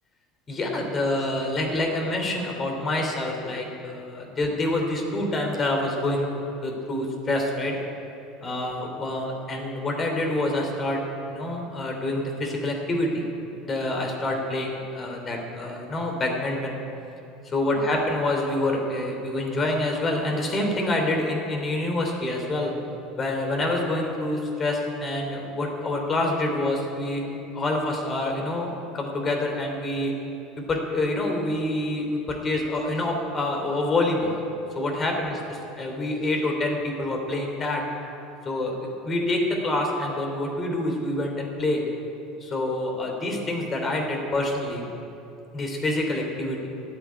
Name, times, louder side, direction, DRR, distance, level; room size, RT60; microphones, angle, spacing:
voice 1, 0.5-6.3 6.6-7.8 8.4-13.2 13.6-16.8 17.4-22.7 23.2-27.2 27.5-30.1 30.7-34.4 34.7-35.4 35.8-37.8 38.4-41.8 42.4-44.9 45.5-46.7, left 1 dB, 30° left, 2 dB, 3.1 m, -27 dB
13.0 x 8.0 x 9.8 m, 2.8 s
figure-of-eight pair, 70°, 0 cm